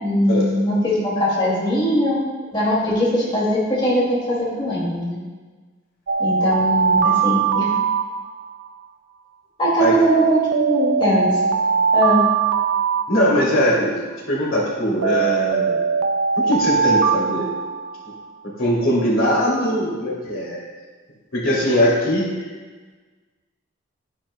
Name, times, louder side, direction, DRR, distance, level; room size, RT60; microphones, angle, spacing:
voice 1, 0.0-2.2 2.5-5.2 6.2-7.7 9.6-11.4 11.9-12.2 20.0-20.2, equal, 25° left, -6 dB, 2.2 m, -20 dB
Alarm, 6.1-8.7 10.0-13.7 15.0-18.2, right 6 dB, 75° right, 0.4 m, -21 dB
voice 2, 13.1-14.0 14.3-15.8 16.4-17.5 18.6-20.6 21.3-22.4, equal, 90° left, -4 dB, 2.6 m, -20 dB
11.5 x 9.8 x 2.2 m, 1.4 s
head